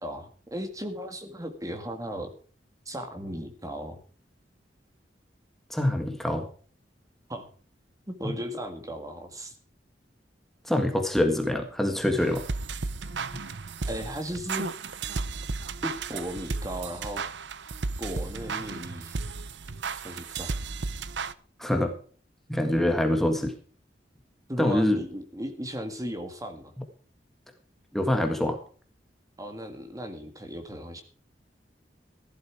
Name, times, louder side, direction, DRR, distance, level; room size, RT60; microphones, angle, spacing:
voice 1, 0.0-2.3 2.9-4.0 7.3-7.5 8.1-9.6 13.9-14.7 15.8-17.2 18.0-19.2 20.0-20.6 24.5-26.7 29.4-31.0, equal, 20° right, 6 dB, 1.9 m, -36 dB
voice 2, 5.7-6.4 8.2-8.3 10.6-12.4 21.6-21.9 22.5-23.5 24.6-25.0 27.9-28.6, left 1 dB, ahead, 4 dB, 1.7 m, -25 dB
sound 1, 12.2-21.3, right 4 dB, 80° right, 0.8 m, -34 dB
15.0 x 12.0 x 4.8 m, 0.42 s
head